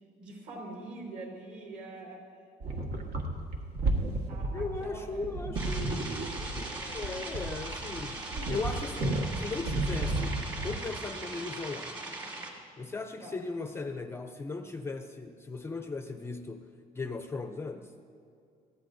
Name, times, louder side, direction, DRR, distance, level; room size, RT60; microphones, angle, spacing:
voice 1, 0.2-2.2 2.6-3.0 4.3-5.6 8.3-8.8 13.2-13.3, right 2 dB, 60° right, 0 dB, 3.9 m, -44 dB
sound 1, 2.6-10.9, right 2 dB, 80° right, 1.6 m, -33 dB
voice 2, 4.5-8.2 8.5-12.1 12.8-16.6 17.0-17.9, left 3 dB, 15° left, 6 dB, 0.5 m, -38 dB
sound 2, 5.5-12.5, right 2 dB, 30° right, 1.9 m, -40 dB
21.0 x 14.5 x 2.6 m, 2.5 s
cardioid pair, 170°, 16 cm